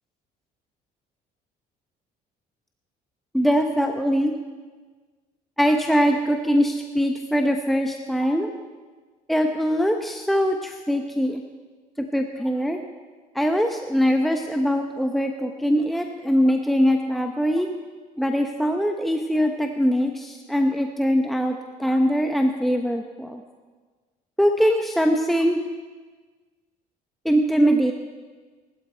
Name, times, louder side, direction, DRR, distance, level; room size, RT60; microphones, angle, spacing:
voice 1, 3.3-4.3 5.6-8.5 9.3-11.4 12.0-12.8 13.3-17.7 18.2-23.4 24.4-25.6 27.2-27.9, equal, ahead, 4 dB, 0.8 m, -22 dB
19.5 x 12.0 x 4.5 m, 1.4 s
cardioid pair, 110°, 17 cm